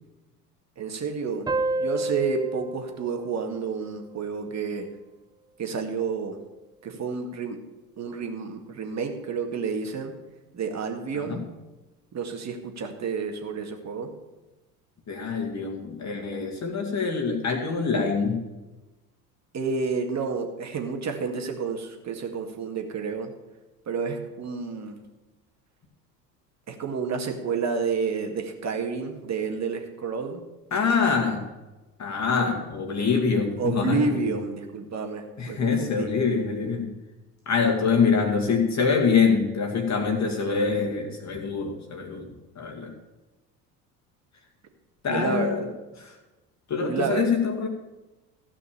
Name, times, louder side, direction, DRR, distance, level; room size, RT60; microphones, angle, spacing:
voice 1, 0.8-1.5 1.8-4.9 5.6-6.4 6.8-7.6 8.0-10.1 10.5-11.4 12.1-14.1 19.5-23.3 23.9-25.0 26.7-30.4 32.4-32.5 33.6-36.1 45.1-45.5 46.8-47.3, right 5 dB, 35° right, 4 dB, 2.1 m, -30 dB
sound 1, 1.5-4.6, right 2 dB, 10° right, 0.5 m, -31 dB
voice 2, 11.1-11.4 15.1-18.4 30.7-31.5 32.0-34.2 35.4-36.9 37.5-42.9 45.0-45.7 46.0-46.2 46.7-47.7, left 5 dB, 35° left, 1 dB, 2.3 m, -25 dB
15.0 x 6.0 x 7.2 m, 1.1 s
figure-of-eight pair, 65°, 47 cm